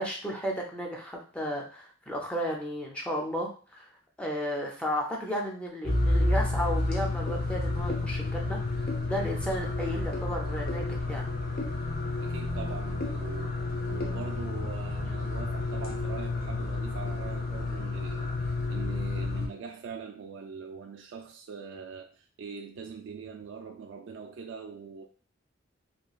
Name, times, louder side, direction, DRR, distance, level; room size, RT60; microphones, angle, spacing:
voice 1, 0.0-3.9 4.2-11.3, equal, 5° left, 0.4 m, -34 dB
sound 1, 5.8-19.5, left 2 dB, 50° left, 0.7 m, -30 dB
voice 2, 12.2-25.1, right 5 dB, 70° right, 0.3 m, -42 dB
2.9 x 2.3 x 2.3 m
head